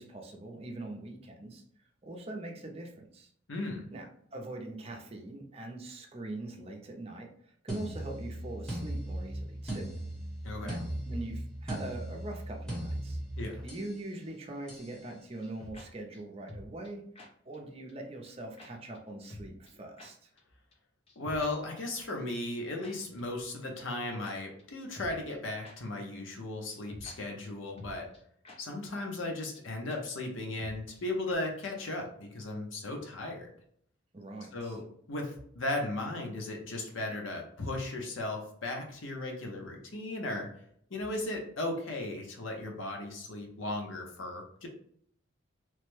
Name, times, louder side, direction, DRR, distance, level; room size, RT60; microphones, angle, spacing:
voice 1, 0.0-1.6 2.0-3.3 3.9-9.9 10.6-13.2 13.6-17.0 17.4-20.3 34.1-34.8, right 2 dB, 30° right, 2 dB, 0.5 m, -42 dB
voice 2, 3.5-3.9 10.4-10.8 13.4-13.6 21.2-28.1 28.6-33.5 34.5-34.8 35.1-40.5 40.9-44.7, left 2 dB, 90° left, 2 dB, 0.8 m, -36 dB
sound 1, 7.7-14.0 14.7-15.0, right 1 dB, 5° left, 0.9 m, -38 dB
sound 2, 15.4-15.9 16.1-16.2 16.5-16.9 17.2-17.3 17.5-17.6 17.9-18.0 18.2-18.3 18.6-18.7 18.9-19.0 19.3-19.7 20.0-20.1 20.4-20.5 20.7-20.8 21.1-21.5 21.8-21.9 22.8-22.9 23.2-23.3 23.5-23.6 23.9-24.0 24.2-24.3 24.6-24.7 24.9-25.4 25.6-25.7 26.0-26.1 26.4-26.5 26.7-27.2 27.4-27.5 27.8-28.2 28.4-28.6 28.8-28.9 29.2-29.3 29.5-29.6 29.9-30.0 30.2-30.3 30.6-31.0 31.3-31.4, left 1 dB, 30° left, 0.5 m, -48 dB
3.2 x 2.1 x 3.1 m, 0.65 s
head